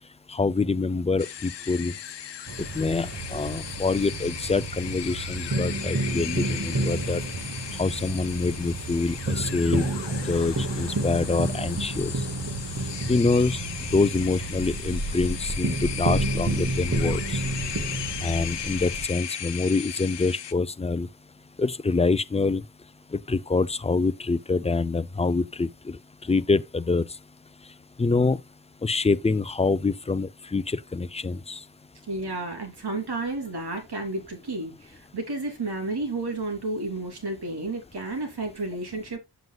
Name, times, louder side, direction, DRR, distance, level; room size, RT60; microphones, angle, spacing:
voice 1, 0.3-1.9 2.8-7.2 7.8-9.9 10.2-12.1 13.1-13.6 13.9-17.4 18.2-21.1 21.6-22.6 23.1-26.0 26.3-27.0 28.0-28.4 28.8-31.6, left 3 dB, 15° left, 0.4 m, -25 dB
sound 1, 1.2-20.5, left 10 dB, 85° left, 0.9 m, -37 dB
sound 2, 2.5-19.1, right 2 dB, 40° right, 1.7 m, -30 dB
voice 2, 32.1-39.2, right 2 dB, 70° right, 3.3 m, -31 dB
9.2 x 7.7 x 2.4 m
wide cardioid pair, 80°, 41 cm